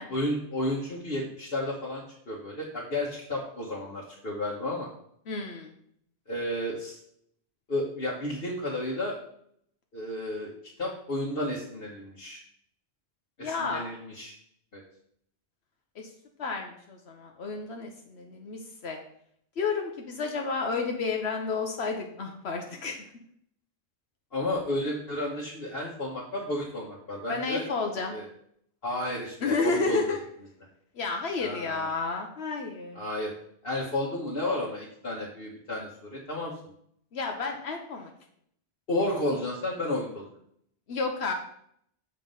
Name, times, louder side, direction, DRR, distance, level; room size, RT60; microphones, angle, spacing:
voice 1, 0.0-4.9 6.3-7.0 7.7-9.2 9.9-10.5 10.8-12.4 13.4-14.3 14.7-14.8 24.3-27.6 28.1-28.3 28.8-30.2 31.4-31.9 32.9-33.3 33.6-36.5 38.9-40.2, left 1 dB, 60° left, -4 dB, 1.4 m, -32 dB
voice 2, 5.3-5.7 13.4-13.8 16.0-16.1 16.4-19.0 19.6-23.0 27.3-28.2 29.4-30.2 31.0-33.0 37.1-38.1 40.9-41.3, left 4 dB, 75° left, 2 dB, 1.1 m, -31 dB
7.3 x 4.5 x 5.4 m, 0.68 s
omnidirectional pair, 1.1 m